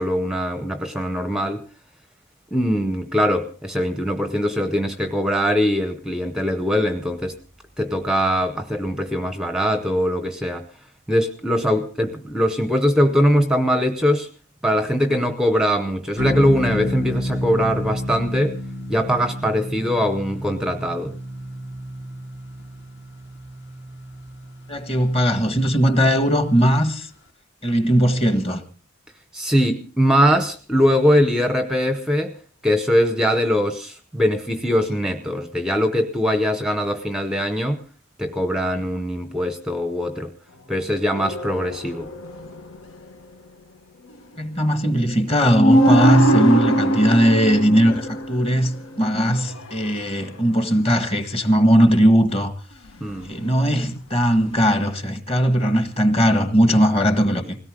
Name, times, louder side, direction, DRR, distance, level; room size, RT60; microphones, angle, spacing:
voice 1, 0.0-1.6 2.5-7.4 7.8-10.7 11.1-14.3 14.6-18.6 18.9-21.1 29.3-32.4 32.6-37.8 38.2-40.3 40.7-42.1 53.0-53.3, equal, 5° right, 0.7 m, -21 dB
sound 1, 16.2-26.7, equal, 55° left, 1.8 m, -31 dB
voice 2, 24.7-27.1 27.6-28.6 44.4-52.5 53.3-57.6, equal, 25° left, 1.6 m, -19 dB
sound 2, 41.1-42.8 45.2-45.3 45.5-50.0 53.1-53.7 54.4-54.6, right 1 dB, 75° left, 1.3 m, -21 dB
21.0 x 17.5 x 3.7 m
head